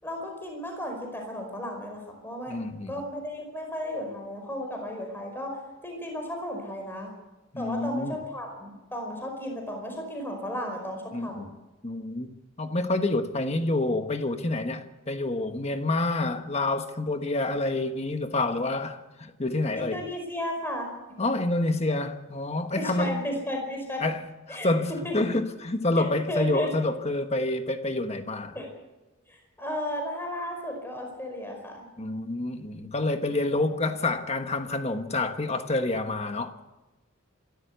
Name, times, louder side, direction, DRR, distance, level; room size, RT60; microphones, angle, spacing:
voice 1, 0.0-5.5 5.8-7.1 7.6-11.5 19.8-20.9 22.7-24.0 24.5-24.7 25.0-25.1 26.0-26.7 28.5-28.7 29.3-31.9, equal, 10° left, 4.9 m, -34 dB
voice 2, 2.5-3.1 7.5-8.2 11.1-11.5 11.8-12.3 12.6-20.0 21.2-23.2 24.0-24.2 24.5-28.5 32.0-36.5, left 2 dB, 30° left, 1.4 m, -28 dB
27.0 x 13.0 x 8.1 m
head